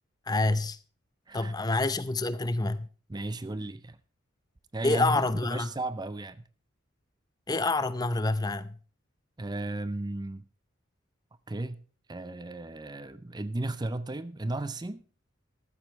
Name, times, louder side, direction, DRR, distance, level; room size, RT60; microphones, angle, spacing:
voice 1, 0.3-0.8 1.3-2.9 4.8-5.7 7.5-8.8, left 2 dB, 20° left, 0.6 m, -27 dB
voice 2, 3.1-4.0 4.7-6.4 9.4-10.4 11.5-11.8 12.1-15.0, right 2 dB, 20° right, 0.5 m, -34 dB
13.5 x 13.5 x 3.2 m
head